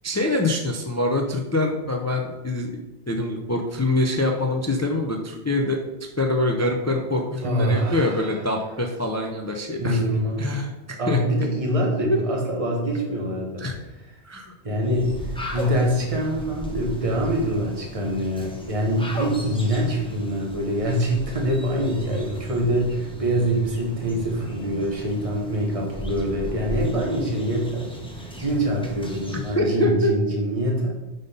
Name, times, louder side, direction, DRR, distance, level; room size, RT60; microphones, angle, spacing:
voice 1, 0.0-2.8 3.1-5.8 6.2-10.0 10.4-11.2 12.0-12.2 13.6-13.7 14.2-14.5 29.5-30.1, left 2 dB, 25° left, 2 dB, 0.3 m, -24 dB
voice 2, 7.4-8.4 9.8-10.6 11.0-13.7 14.6-30.9, equal, 30° right, -1 dB, 1.2 m, -25 dB
sound 1, 14.8-29.7, left 1 dB, 5° left, 0.8 m, -36 dB
5.2 x 4.0 x 5.4 m, 1.0 s
omnidirectional pair, 1.1 m